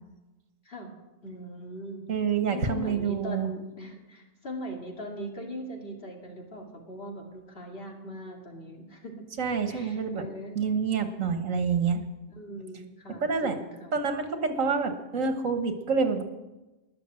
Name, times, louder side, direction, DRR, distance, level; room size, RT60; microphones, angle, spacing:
voice 1, 1.2-2.0 2.4-9.2 9.7-10.6 12.4-13.9, equal, 45° left, 0 dB, 2.7 m, -40 dB
voice 2, 2.1-3.5 9.4-10.2 10.6-12.0 13.2-13.6 13.9-16.2, right 5 dB, 85° right, 7 dB, 1.8 m, -27 dB
20.0 x 6.9 x 7.6 m, 1.1 s
omnidirectional pair, 1.3 m